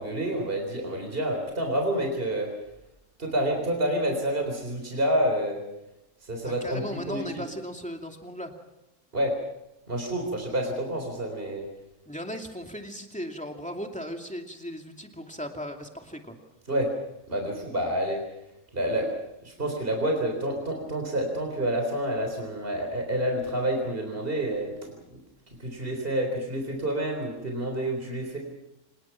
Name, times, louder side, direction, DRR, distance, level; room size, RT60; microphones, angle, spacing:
voice 1, 0.0-2.5 3.2-5.6 6.2-7.4 9.1-9.4 9.9-11.7 16.7-16.9 17.3-18.2 18.7-19.1 19.4-25.2 25.6-28.4, right 1 dB, 45° right, 3 dB, 4.1 m, -28 dB
voice 2, 6.4-8.5 12.1-16.4, equal, 5° left, 3 dB, 2.5 m, -37 dB
26.0 x 20.5 x 5.8 m, 0.89 s
omnidirectional pair, 1.3 m